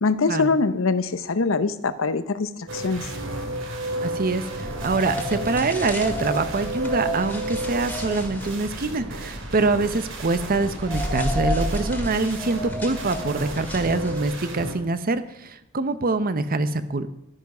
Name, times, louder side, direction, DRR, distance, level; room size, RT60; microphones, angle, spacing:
voice 1, 0.0-3.1, left 4 dB, 75° left, 13 dB, 0.8 m, -23 dB
sound 1, 2.7-14.7, right 1 dB, 65° right, 2.2 m, -33 dB
voice 2, 4.0-17.1, right 3 dB, 45° right, 12 dB, 0.8 m, -25 dB
sound 2, 4.5-14.5, equal, 10° left, 1.9 m, -32 dB
12.0 x 9.9 x 6.0 m, 0.85 s
head